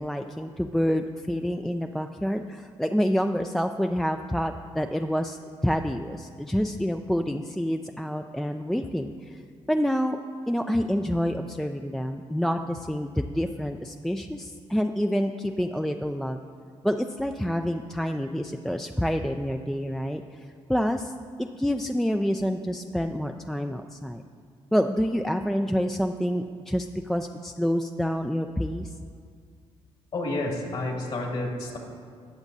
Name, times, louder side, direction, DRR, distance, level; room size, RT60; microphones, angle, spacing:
voice 1, 0.0-9.4 9.7-10.2 10.5-16.4 16.8-21.1 21.4-24.2 24.7-28.9, equal, 5° left, 5 dB, 0.3 m, -27 dB
voice 2, 30.1-31.8, left 2 dB, 55° left, 0 dB, 2.2 m, -30 dB
18.5 x 7.1 x 2.7 m, 2.1 s
cardioid pair, 90°, 12 cm